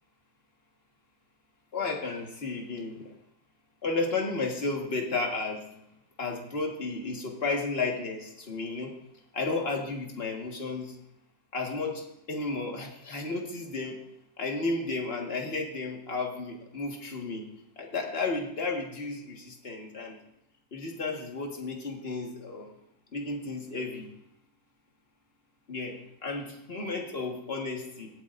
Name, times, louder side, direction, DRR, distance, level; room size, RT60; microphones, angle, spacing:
voice 1, 1.7-3.1 3.8-5.8 6.2-9.0 9.3-11.0 11.5-14.0 14.4-17.5 17.8-20.2 20.7-22.7 23.1-24.1 25.7-28.1, left 3 dB, 40° left, 1 dB, 1.8 m, -33 dB
17.5 x 8.7 x 2.6 m, 0.76 s
omnidirectional pair, 1.7 m